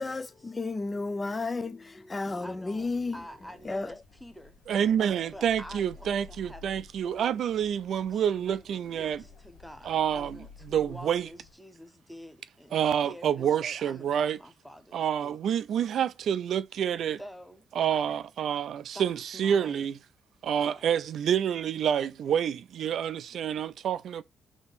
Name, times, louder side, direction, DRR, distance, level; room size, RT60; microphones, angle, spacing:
voice 1, 0.0-3.2 3.6-3.9, left 3 dB, 25° left, 0.4 m, -32 dB
voice 2, 2.4-4.6 5.1-7.4 8.1-15.5 17.2-18.0 18.9-19.1 19.3-19.9 20.6-21.0, equal, ahead, 0.8 m, -48 dB
sound 1, 2.8-11.5, left 4 dB, 75° left, 1.6 m, -53 dB
voice 3, 4.7-9.2 9.8-10.4 10.7-11.3 12.7-14.4 14.9-17.2 17.8-20.0 20.4-24.2, right 9 dB, 65° right, 0.3 m, -28 dB
3.6 x 2.9 x 4.0 m
cardioid pair, 90°, 0 cm